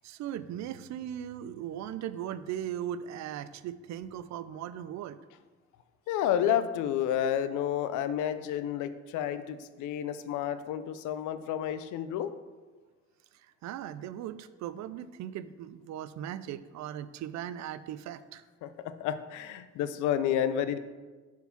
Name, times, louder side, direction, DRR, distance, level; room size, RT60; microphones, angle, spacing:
voice 1, 0.0-5.2 13.6-18.4, right 10 dB, 70° right, 15 dB, 0.4 m, -38 dB
voice 2, 6.1-12.4 18.6-20.8, left 10 dB, 85° left, 11 dB, 0.5 m, -30 dB
5.6 x 4.5 x 5.8 m, 1.3 s
cardioid pair, 90°, 30 cm